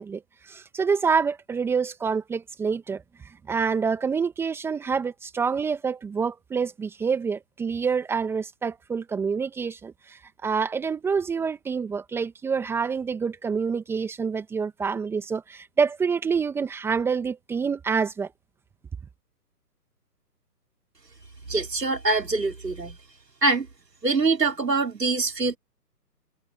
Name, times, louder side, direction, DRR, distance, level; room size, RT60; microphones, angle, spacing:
voice 1, 0.0-18.3, right 5 dB, 5° right, 1.5 m, -27 dB
voice 2, 21.5-23.0 23.4-23.7 24.0-25.6, right 3 dB, 80° right, 4.6 m, -24 dB
figure-of-eight pair, 145°, 49 cm